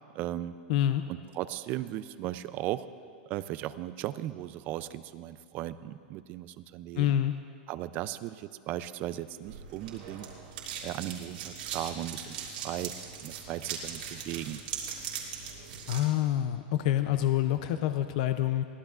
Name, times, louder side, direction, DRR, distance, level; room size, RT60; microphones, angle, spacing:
voice 1, 0.1-0.6 1.1-2.9 3.3-7.2 7.7-10.3 10.8-12.9 13.2-14.6, right 14 dB, 35° right, 14 dB, 0.4 m, -37 dB
voice 2, 0.7-1.0 7.0-7.3 15.9-18.6, left 12 dB, 50° left, 9 dB, 0.5 m, -27 dB
sound 1, 9.4-16.1, right 7 dB, 80° right, 2.6 m, -40 dB
22.0 x 16.0 x 2.5 m, 2.3 s
supercardioid pair, 160°, 5 cm